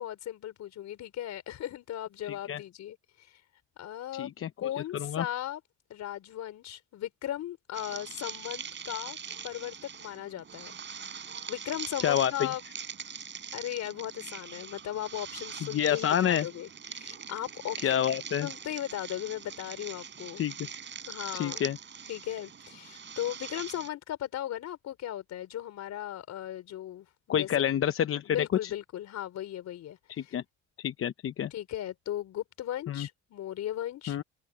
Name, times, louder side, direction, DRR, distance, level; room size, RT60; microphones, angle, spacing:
voice 1, 0.0-3.4 3.8-4.3 4.6-5.6 5.9-9.2 9.4-10.8 11.5-12.6 13.5-18.0 18.4-20.4 21.1-21.6 22.1-27.5 28.2-30.3 31.5-34.2, left 12 dB, 70° left, 4.4 m, -37 dB
voice 2, 2.3-2.6 4.1-4.5 4.9-5.3 12.0-12.5 15.7-16.5 17.8-18.5 20.4-20.5 21.3-21.8 27.3-28.4 28.6-28.7 30.1-30.4 30.8-31.5 32.9-33.1 34.1-34.2, left 10 dB, 50° left, 0.8 m, -28 dB
sound 1, 7.7-23.9, right 7 dB, 40° right, 3.7 m, -42 dB
cardioid pair, 110°, 29 cm